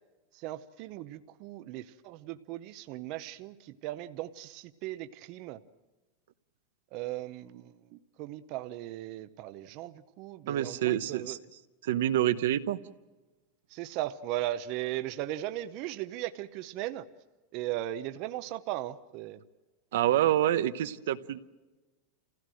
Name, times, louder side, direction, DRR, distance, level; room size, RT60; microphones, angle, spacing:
voice 1, 0.3-5.6 6.9-11.4 13.7-17.1 17.5-19.4, right 14 dB, 45° right, 10 dB, 0.8 m, -37 dB
voice 2, 10.5-11.4 11.8-12.8 19.9-21.4, right 12 dB, 80° right, 11 dB, 0.9 m, -27 dB
27.5 x 16.5 x 7.7 m, 1.2 s
supercardioid pair, 160°, 0 cm